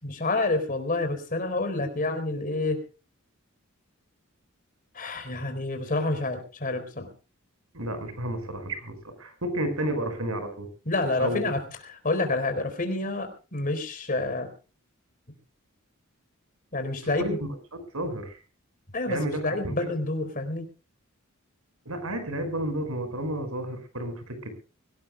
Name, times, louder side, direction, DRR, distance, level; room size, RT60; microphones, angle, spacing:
voice 1, 0.0-2.8 4.9-7.1 10.9-11.6 11.9-14.5 16.7-17.4 18.9-19.2 19.4-20.6, left 2 dB, 40° left, 7 dB, 4.2 m, -28 dB
voice 2, 7.7-10.7 11.2-11.5 17.2-17.4 17.7-18.4 19.1-19.7 21.9-24.5, right 1 dB, 85° right, 9 dB, 5.3 m, -31 dB
24.5 x 18.0 x 2.3 m, 0.34 s
head